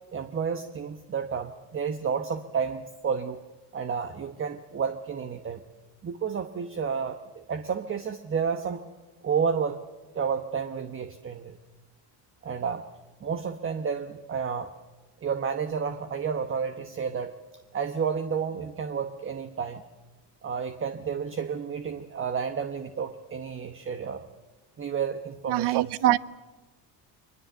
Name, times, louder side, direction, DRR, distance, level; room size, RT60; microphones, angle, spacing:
voice 1, 0.1-3.4 3.7-5.6 6.0-8.8 9.2-9.8 10.1-11.6 12.4-12.8 13.2-14.7 15.2-17.4 17.7-19.8 20.4-24.3 24.8-26.2, right 6 dB, 30° right, 10 dB, 1.0 m, -31 dB
voice 2, 25.5-26.2, right 16 dB, 65° right, 20 dB, 0.8 m, -23 dB
23.0 x 20.5 x 8.1 m, 1.2 s
cardioid pair, 120°, 43 cm